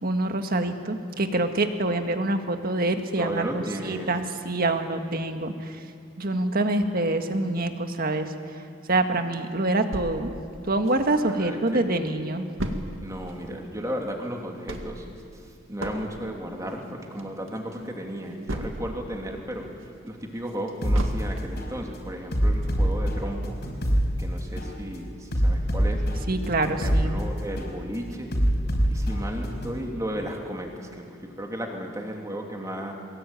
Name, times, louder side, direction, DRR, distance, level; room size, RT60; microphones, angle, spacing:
voice 1, 0.0-5.7 6.2-8.3 8.9-10.3 10.7-12.5 26.3-27.2, right 2 dB, 50° right, 6 dB, 1.7 m, -26 dB
voice 2, 3.2-4.1 11.2-11.9 13.0-15.1 15.3-15.4 15.7-19.7 20.0-23.6 24.2-26.0 26.7-28.4 28.9-32.9, equal, 15° right, 1 dB, 3.0 m, -34 dB
sound 1, 9.9-11.5 11.9-12.0 12.1-19.1 19.5-21.7 22.1-22.2 22.6-22.7, right 1 dB, 85° right, 2.0 m, -36 dB
sound 2, 20.8-21.0 21.6-21.8 22.3-24.0 24.6-24.8 25.3-27.0 27.6-27.8 28.3-29.8, equal, 55° left, 4.9 m, -24 dB
22.5 x 21.5 x 9.1 m, 2.3 s
head